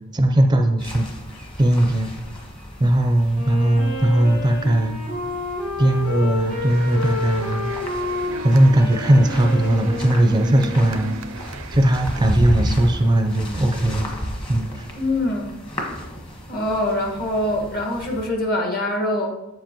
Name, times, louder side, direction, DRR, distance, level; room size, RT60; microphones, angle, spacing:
voice 1, 0.1-1.1 1.6-2.1 2.8-5.0 5.8-7.7 8.4-11.2 11.7-14.1 14.5-14.9, right 1 dB, 20° right, 4 dB, 0.5 m, -18 dB
sound 1, 0.8-18.3, equal, 25° left, 1.3 m, -33 dB
Wind instrument woodwind instrument, 3.3-11.0, left 2 dB, 80° left, 2.8 m, -29 dB
sound 2, 6.5-13.2, right 4 dB, 85° right, 0.5 m, -38 dB
voice 2, 15.0-15.5 16.5-19.3, left 1 dB, 50° left, 0 dB, 1.6 m, -24 dB
7.6 x 7.5 x 3.0 m, 0.97 s
head